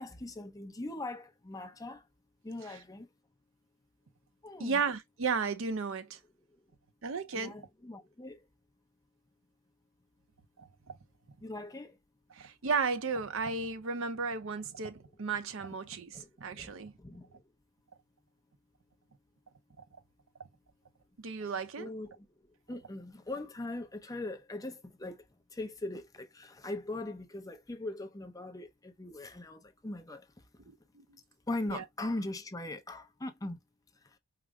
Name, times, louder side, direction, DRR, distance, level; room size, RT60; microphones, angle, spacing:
voice 1, 0.0-2.1 2.4-3.1 4.4-4.8 7.3-8.5 11.4-12.0 16.1-17.4 21.8-22.3 22.7-25.3 25.5-30.4 31.5-33.6 34.0-34.2, left 2 dB, 15° left, 0.6 m, -40 dB
voice 2, 4.6-6.2 7.0-7.5 10.6-10.9 12.3-16.9 19.8-19.9 21.2-21.9 30.7-31.2 31.7-31.8, right 5 dB, 60° right, 0.6 m, -34 dB
4.9 x 2.0 x 3.4 m
head